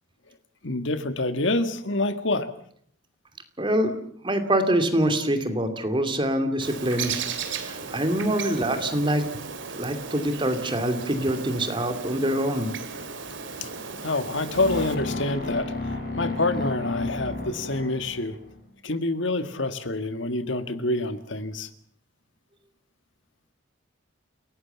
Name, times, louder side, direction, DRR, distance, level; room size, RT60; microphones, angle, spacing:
voice 1, 0.6-2.5 13.6-13.7 14.0-15.7 16.2-18.4 18.8-21.7, left 2 dB, 65° left, 10 dB, 1.7 m, -27 dB
voice 2, 3.6-4.0 4.2-7.1 7.6-9.2 9.8-12.7, right 1 dB, 25° right, 8 dB, 2.6 m, -25 dB
Bird, 6.6-14.9, right 5 dB, 65° right, 2.6 m, -35 dB
sound 1, 14.5-18.6, left 3 dB, 45° left, 7.4 m, -32 dB
29.5 x 18.0 x 7.0 m, 0.62 s
head